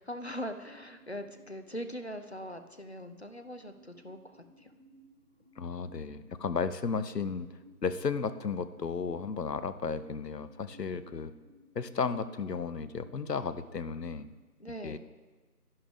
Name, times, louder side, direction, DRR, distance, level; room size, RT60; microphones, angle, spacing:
voice 1, 0.0-4.7 14.6-15.0, equal, 40° left, 8 dB, 0.6 m, -41 dB
sound 1, 0.8-14.3, equal, 35° right, 1.0 m, -59 dB
voice 2, 5.6-7.5 7.8-11.3 11.7-14.3 14.8-15.0, left 5 dB, 75° left, 13 dB, 0.8 m, -34 dB
11.0 x 10.5 x 3.6 m, 1.3 s
figure-of-eight pair, 170°, 49 cm